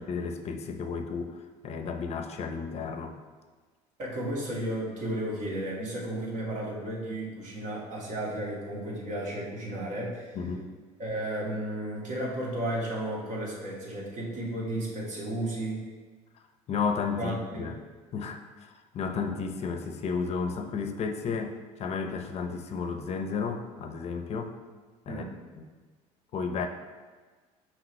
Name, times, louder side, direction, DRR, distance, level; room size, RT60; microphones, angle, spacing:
voice 1, 0.0-1.4 1.6-3.1 10.3-10.7 16.7-17.8 18.1-18.7 18.9-24.5 25.1-25.2 25.6-25.7 26.3-26.7, left 5 dB, 50° left, 6 dB, 0.6 m, -32 dB
voice 2, 4.0-10.4 11.0-15.9 17.2-17.7 25.1-25.4, right 1 dB, 60° right, -4 dB, 1.9 m, -33 dB
6.1 x 4.8 x 3.2 m, 1.4 s
cardioid pair, 100°, 14 cm